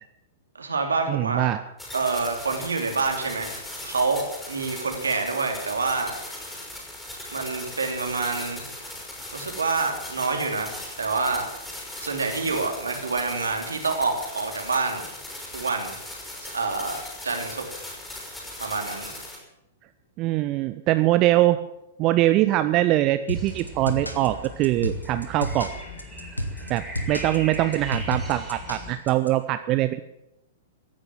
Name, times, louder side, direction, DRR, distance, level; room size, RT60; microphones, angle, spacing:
voice 1, 0.5-1.5 1.9-6.2 7.3-8.6 9.3-11.4 12.0-15.0 15.5-15.9 16.4-17.0 17.2-17.6 18.6-19.1, right 4 dB, 70° right, 3 dB, 3.2 m, -27 dB
voice 2, 1.1-1.6 20.2-21.6 22.0-25.7 26.7-30.0, right 15 dB, 30° right, 11 dB, 0.6 m, -22 dB
sound 1, 1.8-19.4, left 1 dB, 10° left, 5.3 m, -39 dB
sound 2, 23.3-29.3, equal, 85° left, 1.9 m, -32 dB
sound 3, 23.3-29.0, left 1 dB, 10° right, 4.5 m, -40 dB
16.5 x 10.0 x 7.6 m, 0.88 s
figure-of-eight pair, 105°, 0 cm